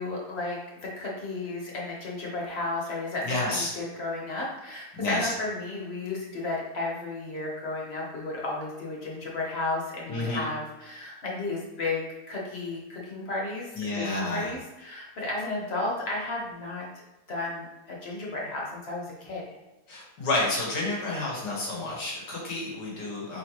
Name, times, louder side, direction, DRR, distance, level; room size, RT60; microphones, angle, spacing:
voice 1, 0.0-16.9 17.3-19.4, left 2 dB, 45° left, -3 dB, 1.1 m, -33 dB
voice 2, 3.2-3.7 4.9-5.3 10.1-10.5 13.8-14.5 19.9-23.4, left 2 dB, 85° left, -4 dB, 2.0 m, -30 dB
4.4 x 4.0 x 2.9 m, 1.0 s
omnidirectional pair, 1.7 m